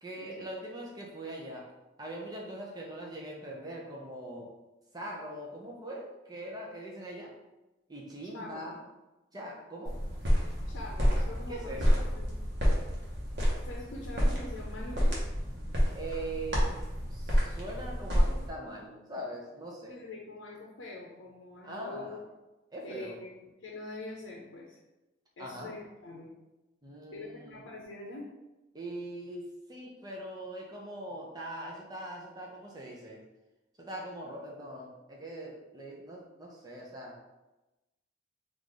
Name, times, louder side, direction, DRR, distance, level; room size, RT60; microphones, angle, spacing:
voice 1, 0.0-1.7 2.0-4.5 4.9-7.3 7.9-8.8 9.3-9.9 11.5-12.0 15.9-16.6 17.1-19.9 21.6-22.2 22.7-23.2 25.4-25.7 26.8-27.6 28.7-33.2 33.8-37.1, right 1 dB, 20° right, -2 dB, 0.5 m, -41 dB
voice 2, 8.3-8.8 10.7-12.4 13.6-15.2 19.9-22.2 22.8-23.3 23.6-24.8 25.4-26.3 27.1-28.3, left 2 dB, 80° left, -3 dB, 0.6 m, -44 dB
sound 1, 9.8-18.5, equal, 60° right, 0.9 m, -29 dB
3.1 x 2.5 x 3.8 m, 1.0 s
head